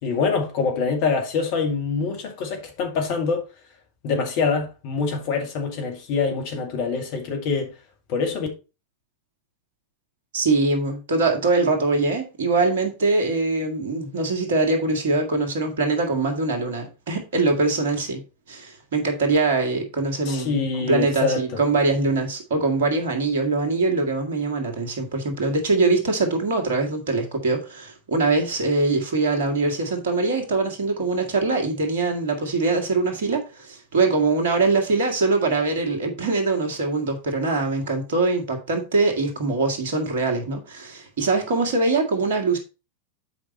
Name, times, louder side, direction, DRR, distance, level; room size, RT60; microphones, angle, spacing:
voice 1, 0.0-3.4 4.0-7.7 8.1-8.5 20.2-21.4, left 5 dB, 45° left, 2.2 m, -25 dB
voice 2, 10.3-18.2 18.5-42.6, right 3 dB, 55° right, 2.0 m, -23 dB
7.9 x 5.1 x 4.3 m
figure-of-eight pair, 90°, 0 cm